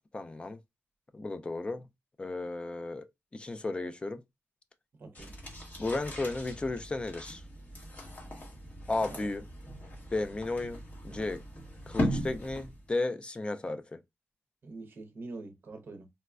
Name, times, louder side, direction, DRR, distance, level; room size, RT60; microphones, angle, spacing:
voice 1, 0.1-0.6 1.1-1.8 2.2-3.1 3.3-4.2 5.8-7.4 8.9-9.4 10.1-11.4 11.9-13.8, left 2 dB, 20° left, 0.4 m, -34 dB
voice 2, 5.0-5.3 9.1-9.3 14.6-16.1, right 3 dB, 50° right, 0.7 m, -45 dB
sound 1, 5.2-12.9, equal, 40° left, 1.1 m, -38 dB
4.0 x 2.1 x 2.3 m
wide cardioid pair, 150°, 5 cm